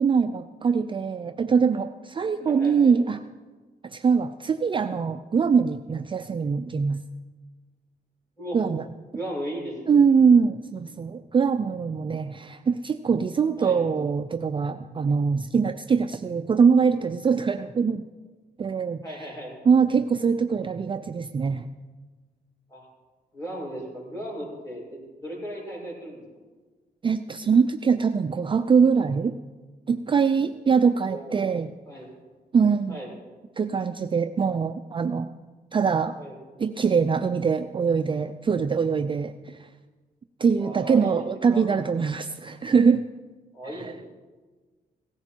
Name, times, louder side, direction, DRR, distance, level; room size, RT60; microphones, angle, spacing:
voice 1, 0.0-3.2 3.9-7.0 8.5-8.8 9.9-18.0 18.6-19.0 19.6-21.7 27.0-29.4 29.9-31.7 32.5-33.0 33.6-35.3 35.7-36.1 36.6-39.7 40.4-43.0 43.7-43.9, right 6 dB, 30° right, 8 dB, 0.4 m, -23 dB
voice 2, 2.5-3.0 8.4-8.6 9.1-10.0 13.6-13.8 19.0-19.6 22.7-22.9 23.3-26.2 30.4-30.5 31.1-31.4 31.9-32.1 32.9-33.1 36.2-36.4 40.6-41.7 43.5-44.0, equal, 20° left, -4 dB, 6.4 m, -36 dB
17.0 x 14.5 x 4.5 m, 1.3 s
wide cardioid pair, 125°, 16 cm